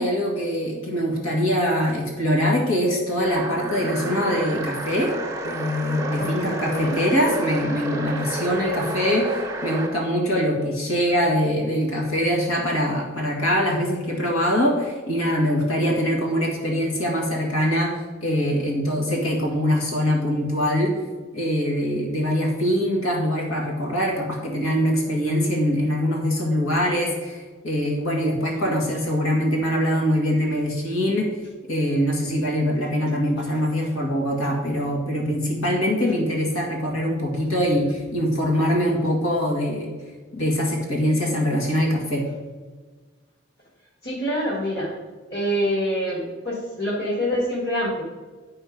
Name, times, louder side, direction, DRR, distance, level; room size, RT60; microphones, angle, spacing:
voice 1, 0.0-5.1 5.4-21.0 21.3-31.3 31.7-39.9 40.3-42.2, equal, 80° left, -1 dB, 1.9 m, -23 dB
sound 1, 3.2-10.0, right 2 dB, 15° right, 0.9 m, -31 dB
voice 2, 6.2-7.0 44.0-44.9 45.3-48.0, equal, 50° left, -4 dB, 1.9 m, -26 dB
10.5 x 4.3 x 5.2 m, 1.4 s
head